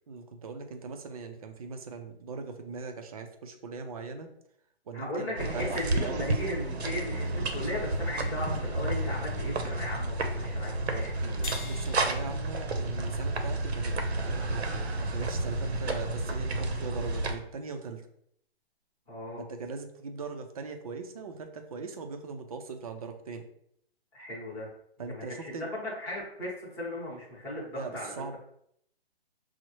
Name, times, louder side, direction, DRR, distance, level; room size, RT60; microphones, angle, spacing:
voice 1, 0.1-4.3 4.9-5.7 6.0-6.4 8.5-8.6 11.6-14.0 14.2-18.1 19.5-23.4 25.0-25.7 27.8-28.4, right 4 dB, 35° right, 5 dB, 0.4 m, -40 dB
voice 2, 4.9-11.5 19.1-19.4 24.1-24.7 25.0-28.4, left 1 dB, 10° left, -5 dB, 0.8 m, -37 dB
sound 1, 5.4-17.3, right 2 dB, 85° right, 0.7 m, -31 dB
sound 2, 11.4-14.0, left 4 dB, 50° left, 0.6 m, -45 dB
6.0 x 2.1 x 3.0 m, 0.71 s
hypercardioid pair, 150°, 32 cm